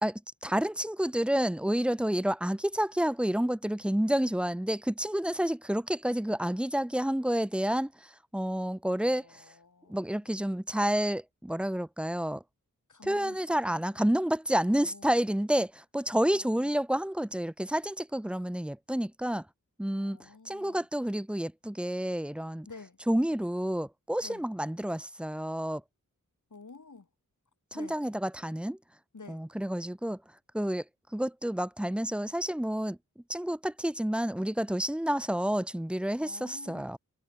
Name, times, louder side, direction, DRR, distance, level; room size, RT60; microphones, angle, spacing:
voice 1, 0.0-9.4 9.9-12.4 13.1-19.5 19.8-22.7 23.1-25.8 27.8-28.8 29.3-30.2 30.5-30.8 31.1-33.0 33.3-37.0, right 1 dB, 5° right, 0.5 m, -29 dB
voice 2, 9.1-10.1 12.9-13.9 14.6-15.1 16.3-16.8 19.9-20.9 22.7-23.0 24.2-24.5 26.5-27.1 27.7-28.0 29.1-29.4 36.2-36.9, left 4 dB, 65° left, 7.2 m, -50 dB
wide cardioid pair, 80°, 33 cm